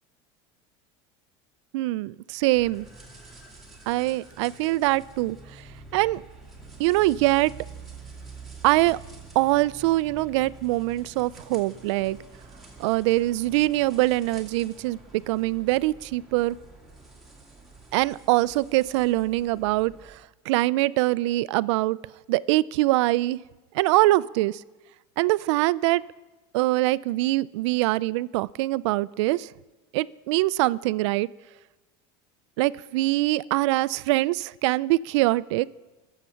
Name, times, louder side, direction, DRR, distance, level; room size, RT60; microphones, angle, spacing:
voice 1, 1.7-2.9 3.9-5.4 5.9-6.2 6.8-7.5 8.6-9.0 9.4-12.2 12.8-16.6 17.9-20.2 20.5-22.0 22.3-23.4 23.7-24.6 25.2-26.0 26.5-29.5 29.9-31.3 32.6-35.7, right 18 dB, 85° right, 19 dB, 0.4 m, -23 dB
sound 1, 2.5-20.2, right 3 dB, ahead, 2.4 m, -47 dB
21.0 x 7.4 x 5.7 m, 1.2 s
cardioid pair, 155°, 15 cm